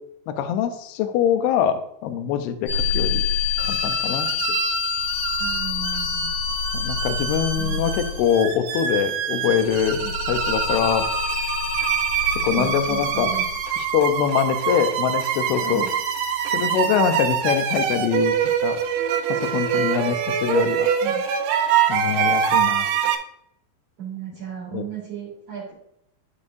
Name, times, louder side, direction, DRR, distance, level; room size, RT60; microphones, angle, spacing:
voice 1, 0.3-3.2 3.7-4.6 6.7-10.0 10.3-11.0 12.4-13.3 13.8-15.9 16.5-18.3 18.6-18.8 19.3-20.9 21.9-22.9 24.7-24.8, left 8 dB, 85° left, 8 dB, 2.2 m, -23 dB
sound 1, 2.7-8.5 9.3-14.3, left 7 dB, 65° left, 3.3 m, -27 dB
sound 2, 3.6-23.1, right 8 dB, 90° right, 2.1 m, -25 dB
voice 2, 5.4-6.3 7.6-8.0 10.0-10.1 12.4-13.9 15.6-15.9 21.0-21.2 24.0-25.7, right 7 dB, 35° right, -10 dB, 3.6 m, -35 dB
13.0 x 5.3 x 2.6 m, 0.76 s
omnidirectional pair, 5.5 m